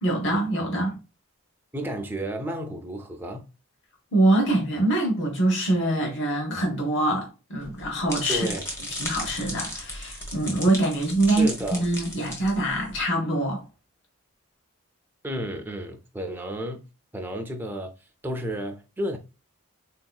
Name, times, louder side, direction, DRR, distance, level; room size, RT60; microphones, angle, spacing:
voice 1, 0.0-1.0 4.1-8.5 8.9-13.6, right 1 dB, 55° left, 0.9 m, -24 dB
voice 2, 1.7-3.5 8.3-8.6 11.3-11.9 15.2-16.8 17.1-17.9 18.2-19.2, right 1 dB, 10° right, 0.4 m, -32 dB
sound 1, 7.6-13.0, equal, 15° left, 0.7 m, -36 dB
3.9 x 2.7 x 2.3 m
head